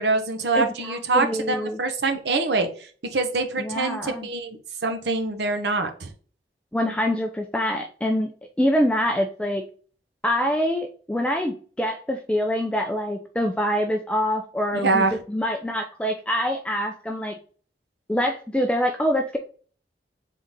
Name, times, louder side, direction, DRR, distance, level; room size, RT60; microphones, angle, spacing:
voice 1, 0.0-6.1 14.8-15.2, right 3 dB, 80° right, 6 dB, 0.8 m, -25 dB
voice 2, 0.6-1.8 3.6-4.3 6.7-8.3 8.6-9.6 10.2-17.4 18.1-19.4, equal, 5° left, 3 dB, 0.3 m, -25 dB
3.7 x 3.6 x 4.0 m, 0.42 s
head